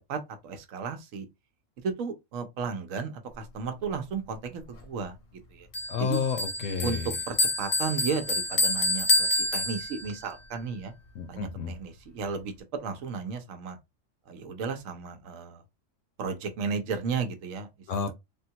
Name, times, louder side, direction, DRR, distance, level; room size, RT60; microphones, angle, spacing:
voice 1, 0.1-1.3 1.8-5.2 5.5-5.7 6.0-6.2 6.8-7.0 7.3-10.9 11.3-11.4 11.7-12.5 12.8-13.8 14.3-15.6 16.2-17.7 18.0-18.1, right 5 dB, 90° right, 1.1 m, -34 dB
Bell, 5.7-10.2, left 2 dB, 45° left, 0.7 m, -28 dB
voice 2, 5.9-7.1 11.1-11.7 17.9-18.2, left 6 dB, 80° left, 1.0 m, -30 dB
3.6 x 2.3 x 2.7 m
omnidirectional pair, 1.3 m